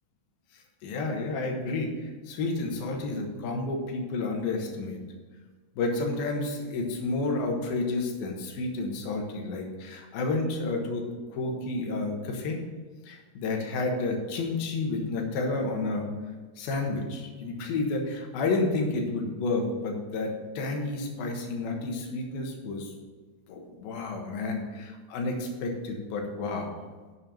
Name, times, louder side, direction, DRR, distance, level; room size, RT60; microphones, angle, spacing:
voice 1, 0.8-5.0 5.8-11.1 11.3-12.6 13.1-16.1 16.6-22.9 23.5-26.7, left 3 dB, 65° left, 1 dB, 2.6 m, -30 dB
7.1 x 6.6 x 7.0 m, 1.4 s
omnidirectional pair, 5.5 m